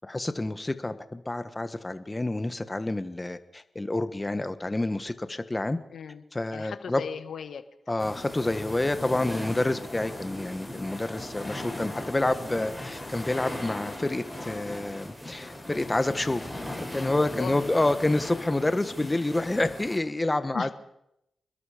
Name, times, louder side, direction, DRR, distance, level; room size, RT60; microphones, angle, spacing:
voice 1, 0.0-5.8 6.3-7.0 7.9-16.4 16.8-20.7, left 2 dB, 20° left, 10 dB, 1.4 m, -28 dB
voice 2, 5.9-6.2 6.5-7.6 17.2-17.7 20.5-20.7, left 6 dB, 80° left, 10 dB, 1.5 m, -36 dB
sound 1, 8.0-20.0, left 1 dB, 5° left, 7.7 m, -38 dB
27.0 x 21.5 x 5.1 m, 0.83 s
cardioid pair, 70°, 0 cm